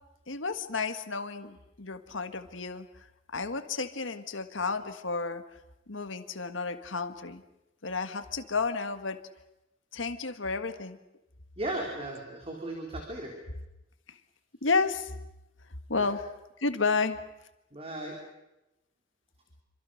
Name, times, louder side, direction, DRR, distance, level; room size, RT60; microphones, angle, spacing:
voice 1, 0.3-2.9 3.3-5.4 5.9-7.4 7.8-9.2 9.9-11.0 14.1-14.2 14.6-15.1 15.9-16.2 16.6-17.2, left 4 dB, 80° left, 9 dB, 1.7 m, -31 dB
voice 2, 11.6-13.3 16.0-16.1 17.7-18.2, right 1 dB, 30° right, 0 dB, 3.9 m, -36 dB
27.5 x 25.5 x 6.5 m, 0.94 s
head